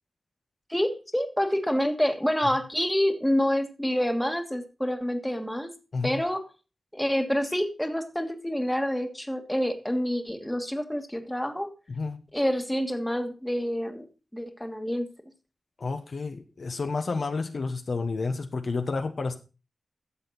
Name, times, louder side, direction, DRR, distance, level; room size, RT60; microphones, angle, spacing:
voice 1, 0.7-5.7 6.0-6.4 6.9-11.7 12.3-14.1 14.3-15.1, equal, 5° left, 6 dB, 1.6 m, -27 dB
voice 2, 15.8-19.4, left 4 dB, 60° left, 6 dB, 1.2 m, -30 dB
12.5 x 7.4 x 4.1 m, 0.31 s
wide cardioid pair, 105°, 0 cm